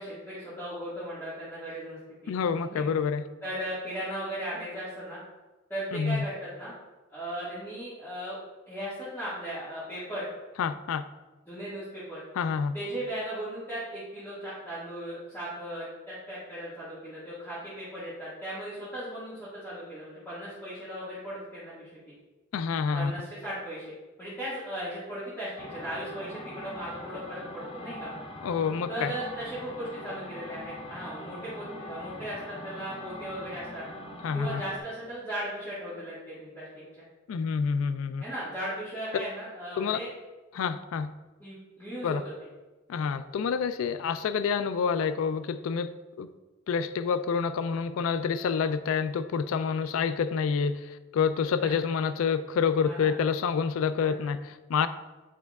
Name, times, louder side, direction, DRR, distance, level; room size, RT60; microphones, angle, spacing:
voice 1, 0.0-2.0 2.2-2.3 2.7-2.9 3.4-5.2 5.7-6.7 7.1-8.4 8.7-10.3 11.5-12.2 12.7-21.9 22.9-23.8 24.2-28.1 28.9-33.8 34.3-36.7 37.0-37.1 38.2-40.1 41.4-42.3 51.6-51.7 52.8-53.1 54.0-54.3, right 1 dB, 10° left, -12 dB, 1.7 m, -37 dB
voice 2, 2.3-3.3 5.9-6.2 10.6-11.1 12.4-12.7 22.5-23.1 28.4-29.1 34.2-34.6 37.3-38.2 39.8-40.0 40.5-41.1 42.0-42.2 42.9-46.3 46.7-54.9, left 6 dB, 85° left, 12 dB, 0.3 m, -28 dB
sound 1, 25.6-34.8, left 1 dB, 25° left, 0.6 m, -42 dB
8.4 x 5.2 x 2.3 m, 1.1 s
head